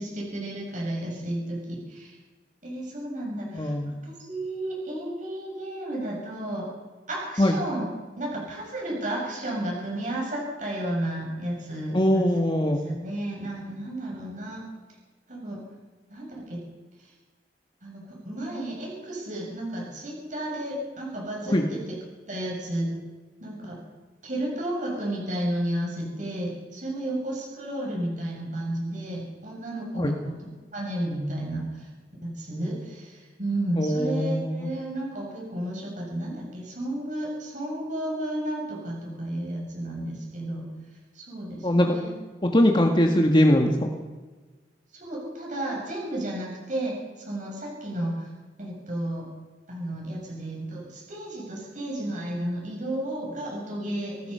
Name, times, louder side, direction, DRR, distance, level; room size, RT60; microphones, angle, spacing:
voice 1, 0.0-2.2 2.6-6.7 7.1-7.9 8.2-12.3 12.6-14.6 15.3-15.6 16.1-16.6 17.0-17.1 17.8-22.0 22.3-22.9 23.4-23.8 24.2-30.4 30.7-31.9 32.2-40.6 41.1-42.1 44.9-48.3 48.6-49.3 49.7-54.3, right 1 dB, 45° right, -2 dB, 7.8 m, -32 dB
voice 2, 3.5-3.9 7.4-7.5 11.9-12.8 21.5-21.6 30.0-30.1 33.7-34.7 41.6-42.0 42.5-43.9, left 1 dB, 25° left, 2 dB, 1.7 m, -21 dB
27.0 x 18.5 x 5.7 m, 1.3 s
head